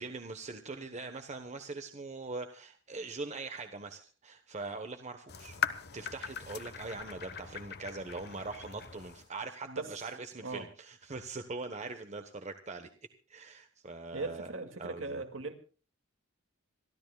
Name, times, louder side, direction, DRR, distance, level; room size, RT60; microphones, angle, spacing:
voice 1, 0.0-5.6 5.9-12.9 13.3-14.5 14.8-15.2, right 3 dB, 35° right, 7 dB, 1.2 m, -42 dB
sound 1, 5.3-9.3, left 8 dB, 55° left, 1.2 m, -40 dB
voice 2, 9.7-10.0 10.4-10.7 14.1-15.5, right 3 dB, 70° right, 7 dB, 2.3 m, -39 dB
27.0 x 13.0 x 2.3 m, 0.38 s
head